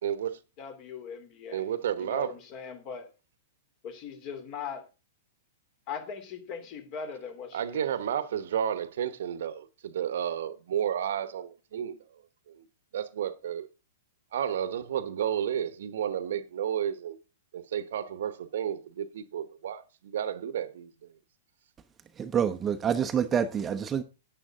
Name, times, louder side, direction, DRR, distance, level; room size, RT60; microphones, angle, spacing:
voice 1, 0.0-0.4 1.5-2.3 7.5-12.0 12.5-12.6 12.9-13.7 14.3-17.2 17.5-21.1, right 9 dB, 65° right, 1.1 m, -32 dB
voice 2, 0.6-1.7 2.0-3.1 3.8-4.8 5.9-8.2, left 6 dB, 40° left, 3.3 m, -40 dB
voice 3, 22.2-24.0, right 8 dB, 20° right, 0.9 m, -27 dB
11.5 x 9.5 x 3.8 m
figure-of-eight pair, 110°, 0 cm